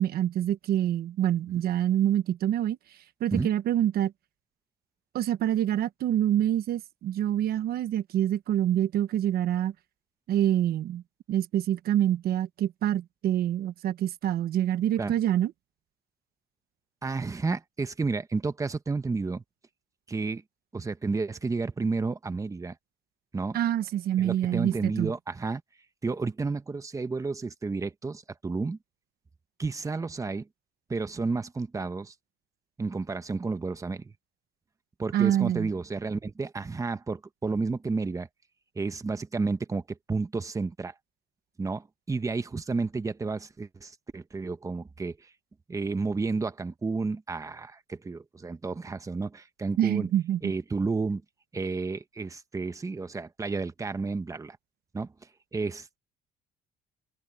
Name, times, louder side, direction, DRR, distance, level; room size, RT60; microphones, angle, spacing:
voice 1, 0.0-2.8 3.2-4.1 5.1-9.7 10.3-11.0 11.3-15.5 23.5-25.1 35.1-35.7 49.8-50.5, right 11 dB, 65° right, 1.1 m, -26 dB
voice 2, 17.0-19.4 20.1-20.4 20.7-22.7 23.3-23.6 24.2-25.6 26.0-28.8 29.6-30.5 30.9-32.1 32.8-34.1 35.0-38.3 38.7-40.9 41.6-45.2 45.7-50.1 50.4-51.2 51.5-54.6 54.9-55.1 55.5-56.0, right 4 dB, 20° right, 1.2 m, -31 dB
open air
cardioid pair, 110°, 17 cm